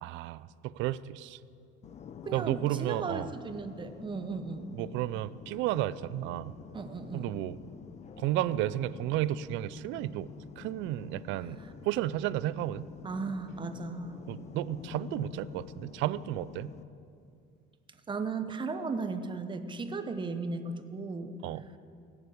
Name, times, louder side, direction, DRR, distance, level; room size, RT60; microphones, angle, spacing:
voice 1, 0.0-1.4 2.3-3.3 4.7-6.5 7.1-7.6 8.2-10.3 10.6-12.9 14.3-16.7 21.4-21.6, right 14 dB, 70° right, 18 dB, 0.5 m, -32 dB
sound 1, 1.8-16.8, left 6 dB, 35° left, 0.7 m, -48 dB
voice 2, 2.2-4.7 6.7-7.3 13.0-14.2 18.1-21.3, right 4 dB, 25° right, 9 dB, 1.0 m, -36 dB
18.5 x 7.4 x 8.0 m, 2.4 s
cardioid pair, 125°, 20 cm